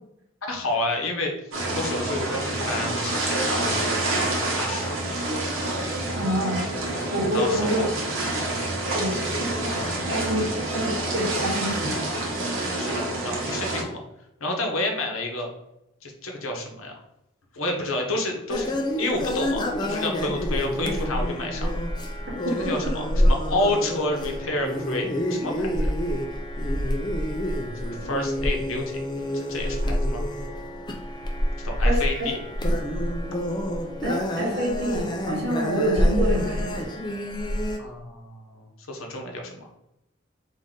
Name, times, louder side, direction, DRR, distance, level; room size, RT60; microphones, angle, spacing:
voice 1, 0.4-1.3 1.7-4.9 6.9-7.0 7.3-7.9 9.1-9.2 12.8-14.0 14.4-15.5 16.0-17.0 17.5-18.7 19.0-21.7 22.5-25.9 27.8-29.0 29.3-30.2 31.6-32.4 37.8-39.7, left 2 dB, 85° left, 2 dB, 0.8 m, -29 dB
sound 1, 1.5-13.8, right 2 dB, 80° right, 1.0 m, -28 dB
voice 2, 6.2-6.6 7.1-7.8 8.9-12.0 22.4-22.9 31.8-32.0 34.0-36.9, equal, 55° right, -2 dB, 1.2 m, -27 dB
sound 2, 18.5-37.8, equal, 20° left, 0.3 m, -27 dB
3.7 x 2.6 x 3.7 m, 0.86 s
head